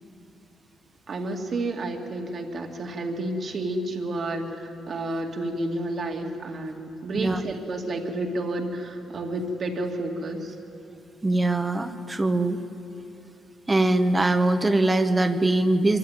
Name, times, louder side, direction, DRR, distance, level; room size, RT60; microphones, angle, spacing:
voice 1, 1.1-10.5, right 2 dB, 50° right, 2 dB, 2.3 m, -30 dB
voice 2, 11.2-12.6 13.7-16.0, right 2 dB, 20° right, 9 dB, 1.2 m, -22 dB
24.0 x 14.0 x 9.2 m, 2.9 s
cardioid pair, 90°, 0 cm